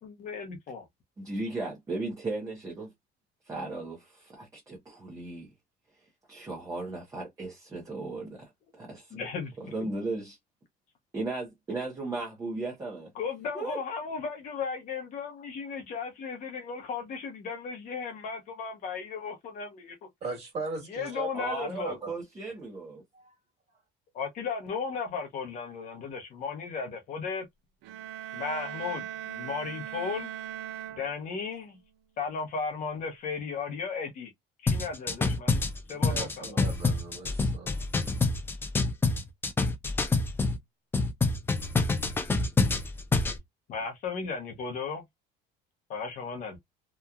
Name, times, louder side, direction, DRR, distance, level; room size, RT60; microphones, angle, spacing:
voice 1, 0.0-0.9 9.1-9.5 13.2-20.0 20.8-21.9 24.1-27.5 28.3-30.3 30.9-31.8 32.2-34.3 34.6-35.6 35.9-36.9 43.7-45.0 45.9-46.6, left 5 dB, 40° left, 0.8 m, -35 dB
voice 2, 1.2-2.9 3.5-5.5 6.3-9.2 9.6-10.4 11.1-13.1 13.5-13.8 21.3-23.0, right 2 dB, 15° right, 0.8 m, -36 dB
voice 3, 20.2-21.3 21.8-22.1 23.1-23.3 35.9-37.8, right 4 dB, 35° right, 1.7 m, -38 dB
sound 1, 27.8-31.6, right 10 dB, 65° right, 0.4 m, -39 dB
sound 2, 34.7-40.6 40.9-43.4, left 3 dB, 10° left, 0.3 m, -26 dB
2.9 x 2.3 x 2.3 m
cardioid pair, 165°, 20 cm